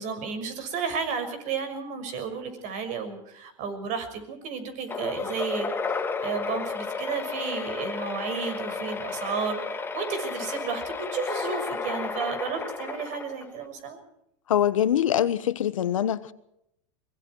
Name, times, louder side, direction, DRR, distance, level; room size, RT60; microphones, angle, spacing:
voice 1, 0.0-5.7 6.2-14.0, right 6 dB, 50° right, 6.2 m, -32 dB
sound 1, 4.9-13.7, left 4 dB, 15° left, 1.9 m, -32 dB
voice 2, 14.5-16.3, left 10 dB, 90° left, 1.3 m, -24 dB
24.0 x 23.0 x 4.8 m
hypercardioid pair, 115°, 16 cm